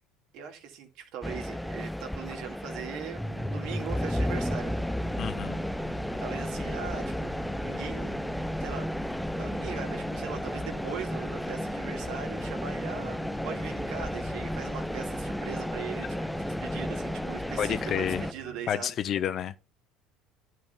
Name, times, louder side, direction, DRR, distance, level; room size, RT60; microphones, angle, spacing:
voice 1, 0.3-4.8 6.2-7.3 7.6-8.2 8.6-8.9 9.2-18.9, right 8 dB, 70° right, 2.1 m, -40 dB
sound 1, 1.2-18.3, left 1 dB, 5° left, 0.5 m, -33 dB
sound 2, 3.2-18.7, right 7 dB, 85° right, 2.0 m, -47 dB
voice 2, 5.2-5.6 17.6-18.2 18.7-19.5, left 9 dB, 50° left, 0.7 m, -29 dB
10.5 x 4.6 x 5.5 m
supercardioid pair, 90°, 0 cm